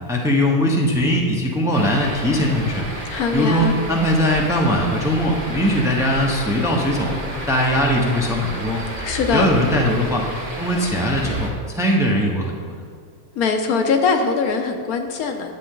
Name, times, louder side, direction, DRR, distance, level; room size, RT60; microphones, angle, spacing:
voice 1, 0.1-2.8 3.3-8.8 9.3-10.2 10.6-12.7, equal, ahead, -1 dB, 0.8 m, -20 dB
sound 1, 1.7-11.5, right 1 dB, 30° right, 1.8 m, -31 dB
voice 2, 3.1-3.8 9.0-9.5 13.4-15.5, left 5 dB, 70° left, 5 dB, 1.2 m, -21 dB
9.9 x 7.8 x 3.8 m, 2.1 s
omnidirectional pair, 1.7 m